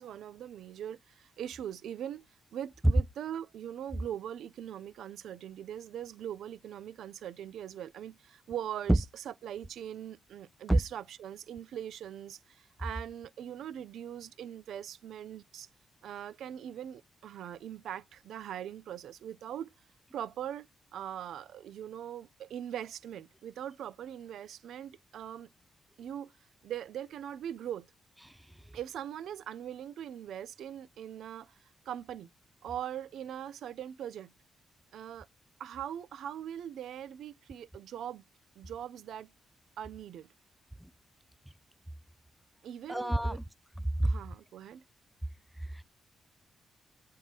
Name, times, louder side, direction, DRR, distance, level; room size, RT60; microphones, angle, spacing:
voice 1, 0.0-2.3 2.5-15.7 16.0-19.7 20.1-20.7 20.9-25.5 26.0-26.3 26.6-27.9 28.7-32.3 32.6-34.3 34.9-35.3 35.6-38.2 38.6-39.3 39.8-40.3 42.6-43.4 44.0-44.8, right 10 dB, 85° right, 0.6 m, -41 dB
voice 2, 28.2-28.6 40.8-40.9 42.9-43.4 44.0-44.1 45.6-45.8, right 1 dB, 5° right, 0.3 m, -29 dB
7.4 x 3.7 x 4.4 m
cardioid pair, 130°, 0 cm